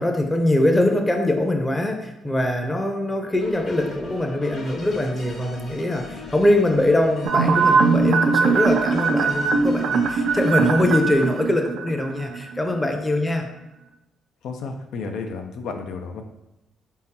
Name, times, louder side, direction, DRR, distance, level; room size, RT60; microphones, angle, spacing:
voice 1, 0.0-13.5, left 1 dB, 15° left, 4 dB, 0.6 m, -22 dB
sound 1, 3.4-11.4, left 2 dB, 55° left, 1.5 m, -39 dB
sound 2, 7.2-12.6 12.9-13.0, right 4 dB, 80° right, 0.3 m, -21 dB
voice 2, 14.4-16.2, left 4 dB, 80° left, 5 dB, 0.4 m, -32 dB
4.0 x 3.7 x 2.8 m, 0.92 s
cardioid pair, 90°, 0 cm